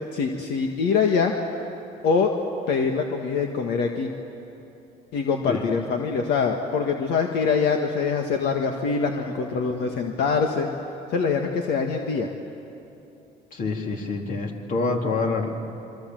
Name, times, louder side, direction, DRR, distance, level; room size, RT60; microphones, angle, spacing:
voice 1, 0.0-1.3 2.0-2.3 2.7-4.1 5.1-10.7 11.1-12.3, left 5 dB, 75° left, 2 dB, 1.8 m, -24 dB
voice 2, 13.5-15.5, left 3 dB, 55° left, 2 dB, 3.2 m, -26 dB
26.5 x 24.5 x 7.8 m, 2.8 s
cardioid pair, 110°, 17 cm